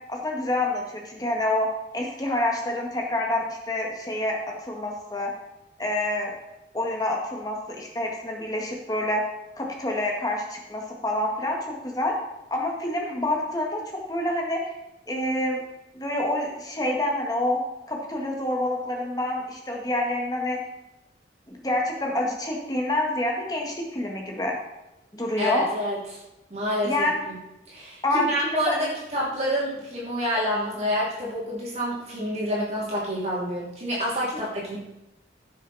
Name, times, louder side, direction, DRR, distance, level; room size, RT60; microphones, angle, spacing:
voice 1, 0.1-1.7 1.9-5.3 5.8-6.3 6.7-9.2 9.6-12.2 12.5-13.8 14.1-14.6 15.1-15.6 15.9-17.6 17.9-20.6 21.5-24.6 25.1-25.7 26.8-27.2 28.0-28.8, left 1 dB, 20° left, 0 dB, 1.7 m, -27 dB
voice 2, 25.4-26.2 26.5-27.4 27.7-34.8, equal, 35° right, -5 dB, 2.8 m, -28 dB
16.0 x 6.5 x 4.2 m, 0.93 s
head